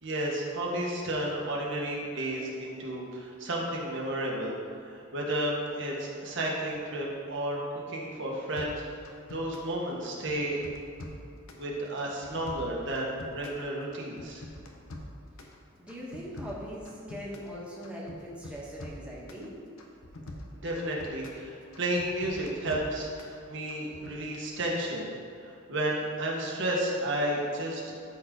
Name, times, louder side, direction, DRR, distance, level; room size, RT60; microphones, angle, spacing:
voice 1, 0.0-7.6 7.9-10.6 11.5-14.4 20.6-25.1 25.4-27.9, right 1 dB, 60° right, -2 dB, 1.5 m, -32 dB
sound 1, 8.6-9.7 10.0-11.6 12.0-13.6 13.9-15.5 15.9-17.5 17.8-19.5 19.8-21.4 21.7-23.4 23.7-24.2, left 1 dB, 80° left, 1.0 m, -44 dB
voice 2, 15.8-19.5, equal, 5° right, -6 dB, 1.5 m, -41 dB
12.5 x 4.4 x 3.9 m, 2.5 s
head